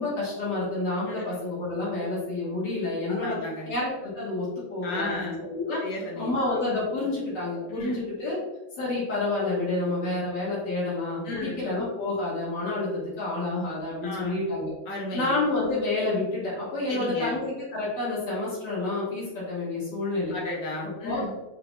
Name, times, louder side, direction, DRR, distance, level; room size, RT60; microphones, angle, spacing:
voice 1, 0.0-3.4 3.7-5.8 6.1-8.4 8.8-14.7 15.1-20.4 21.0-21.3, left 2 dB, 80° left, -8 dB, 2.0 m, -29 dB
voice 2, 3.1-3.7 4.8-5.4 5.8-6.3 7.7-8.0 11.2-11.6 14.0-14.3 14.9-15.4 16.9-17.4 20.3-21.3, left 2 dB, 60° left, -2 dB, 1.4 m, -34 dB
5.5 x 2.1 x 3.2 m, 1.1 s
omnidirectional pair, 1.8 m